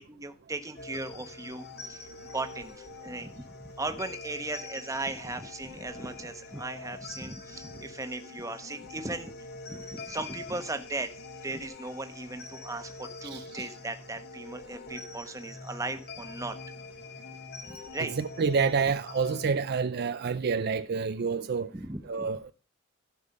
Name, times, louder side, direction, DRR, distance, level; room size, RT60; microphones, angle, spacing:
voice 1, 0.0-2.1 2.3-9.3 9.7-11.1 11.4-16.6 17.7-18.1 21.7-22.3, right 2 dB, 15° right, 1.1 m, -37 dB
sound 1, 0.8-19.5, left 3 dB, 55° left, 1.3 m, -44 dB
voice 2, 13.3-13.6 18.0-21.7 22.0-22.5, right 5 dB, 55° right, 0.4 m, -28 dB
15.0 x 5.4 x 5.4 m
head